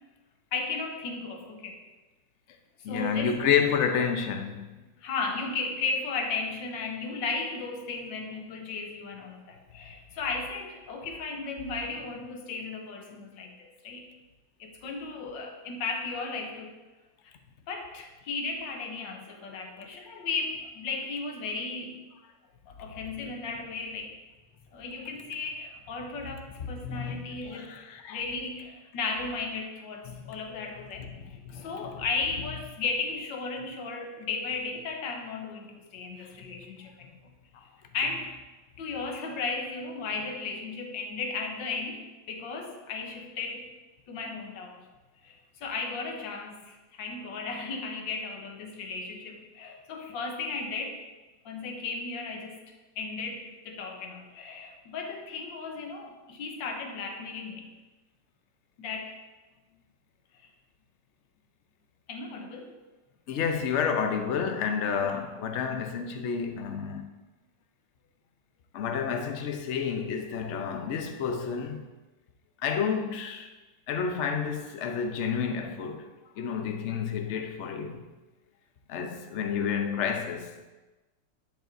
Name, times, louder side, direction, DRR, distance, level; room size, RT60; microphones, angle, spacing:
voice 1, 0.5-1.8 2.9-3.4 5.0-14.1 14.6-16.8 17.7-22.0 22.7-24.2 24.7-31.1 31.5-37.2 37.9-38.3 38.8-43.7 44.1-44.9 45.2-51.0 51.5-52.6 53.0-57.7 58.8-59.1 62.1-62.8 65.0-65.3, left 4 dB, 90° left, 1.7 m, -35 dB
voice 2, 2.8-4.7 26.6-28.2 30.1-30.3 31.0-32.0 36.2-36.3 63.3-67.1 68.7-71.9 72.6-73.5 73.9-76.1 76.4-78.0 78.9-80.6, left 7 dB, 65° left, 0.7 m, -30 dB
10.0 x 7.1 x 2.6 m
omnidirectional pair, 2.0 m